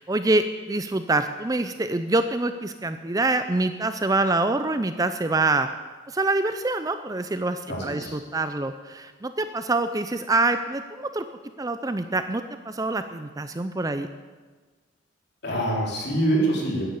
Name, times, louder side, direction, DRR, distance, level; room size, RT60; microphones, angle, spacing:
voice 1, 0.0-5.7 6.1-11.3 11.6-14.1, right 2 dB, 15° right, 9 dB, 0.4 m, -25 dB
voice 2, 7.7-8.1 15.4-16.9, right 1 dB, 50° left, -3 dB, 3.9 m, -25 dB
14.0 x 9.5 x 8.4 m, 1.4 s
head